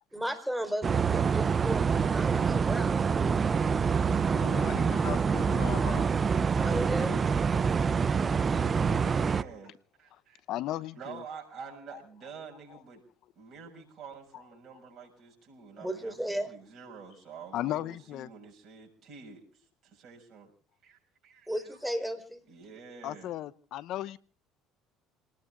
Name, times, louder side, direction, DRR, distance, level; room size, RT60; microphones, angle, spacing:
voice 1, 0.1-3.9 6.5-7.2 15.8-16.5 21.5-22.4, equal, 5° right, 4.6 m, -35 dB
sound 1, 0.8-9.4, right 6 dB, 35° right, 0.7 m, -26 dB
Squeak, 3.2-8.3, left 3 dB, 45° left, 6.4 m, -54 dB
voice 2, 3.6-5.0 6.6-6.9 8.5-9.7 10.0-10.4 10.7-13.0 13.3-20.5 20.8-21.8 22.5-23.3, right 5 dB, 50° right, 6.6 m, -48 dB
voice 3, 4.3-6.1 10.5-11.2 11.9-12.0 17.5-18.3 23.0-24.2, left 14 dB, 65° left, 0.8 m, -36 dB
30.0 x 19.0 x 2.5 m
hypercardioid pair, 70°, 0 cm